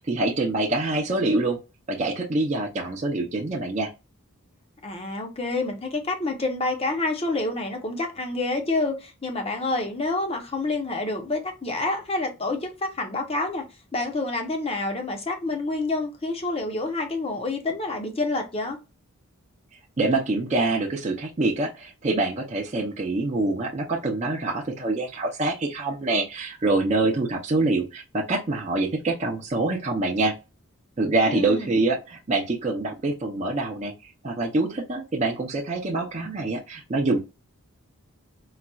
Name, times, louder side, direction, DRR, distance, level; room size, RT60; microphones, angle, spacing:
voice 1, 0.0-1.6 1.9-3.9 20.0-30.3 31.0-33.9 34.2-37.2, right 2 dB, 30° right, 0.5 m, -25 dB
voice 2, 4.8-13.7 13.9-18.8 31.3-31.8, left 2 dB, 25° left, 0.7 m, -28 dB
4.0 x 2.3 x 2.3 m
head